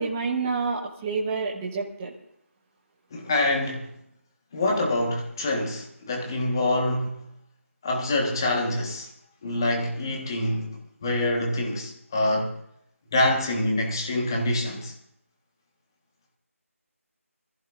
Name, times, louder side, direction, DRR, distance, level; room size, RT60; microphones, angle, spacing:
voice 1, 0.0-2.1, right 4 dB, 10° right, 1.1 m, -28 dB
voice 2, 3.1-4.0 4.5-7.2 7.8-9.1 9.4-12.5 13.1-14.9, left 1 dB, 15° left, 1.5 m, -26 dB
25.5 x 15.0 x 2.6 m
figure-of-eight pair, 175°, 8 cm